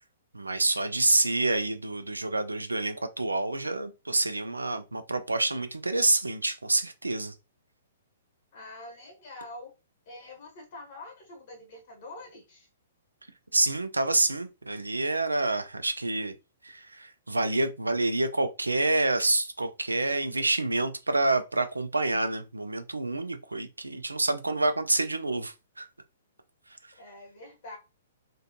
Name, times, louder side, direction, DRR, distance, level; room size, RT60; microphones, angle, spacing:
voice 1, 0.3-7.3 13.5-16.3 16.6-25.9, right 2 dB, 90° right, 0.3 m, -27 dB
voice 2, 8.5-9.7 10.1-12.7 27.0-27.8, left 2 dB, 45° left, 0.9 m, -45 dB
2.4 x 2.2 x 2.5 m
figure-of-eight pair, 120°, 0 cm